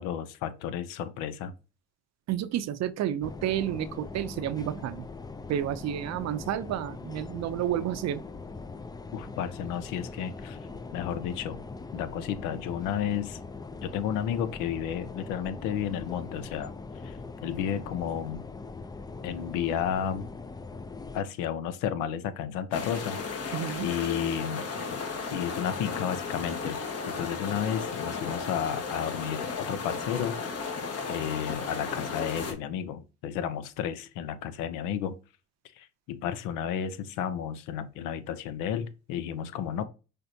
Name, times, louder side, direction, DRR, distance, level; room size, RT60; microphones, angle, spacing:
voice 1, 0.0-1.5 9.1-10.6 10.9-11.6 11.9-13.4 13.8-16.7 17.0-18.4 19.2-20.3 21.1-23.5 23.8-24.7 25.3-26.8 27.1-30.7 31.1-35.2 35.8-39.8, left 9 dB, 80° left, 0.7 m, -32 dB
voice 2, 2.3-5.1 5.5-8.2 23.5-23.9, right 11 dB, 55° right, 0.6 m, -30 dB
sound 1, 3.2-21.2, left 3 dB, 15° left, 0.4 m, -41 dB
sound 2, 22.7-32.5, left 5 dB, 50° left, 1.4 m, -34 dB
5.7 x 3.4 x 2.7 m
supercardioid pair, 75°, 32 cm